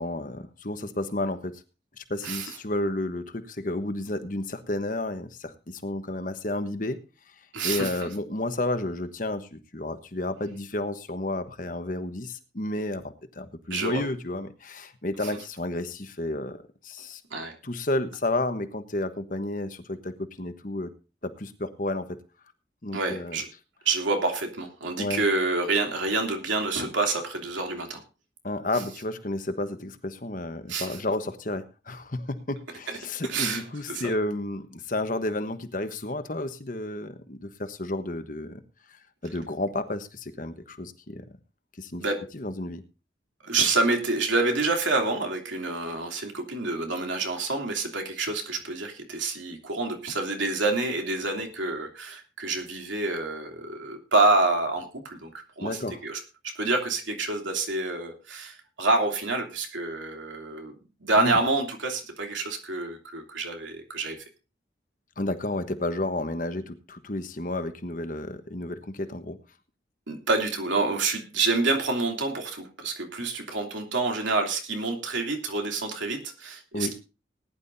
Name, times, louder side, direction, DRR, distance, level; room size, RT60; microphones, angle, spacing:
voice 1, 0.0-1.6 2.0-7.0 7.6-17.2 17.6-20.9 21.2-22.2 22.8-23.4 25.0-25.2 28.4-38.6 38.9-41.2 41.8-42.0 42.3-42.8 55.6-56.0 61.1-61.4 65.2-69.4 76.7-76.9, left 1 dB, 45° left, 8 dB, 1.2 m, -31 dB
voice 2, 7.5-8.1 13.7-14.0 17.3-17.6 22.9-23.5 23.8-28.0 30.7-31.0 33.3-33.6 33.9-34.1 42.0-42.2 43.4-56.2 56.5-60.7 61.0-64.2 70.1-76.9, right 3 dB, 90° right, 3 dB, 2.9 m, -27 dB
19.5 x 10.5 x 2.7 m, 0.32 s
head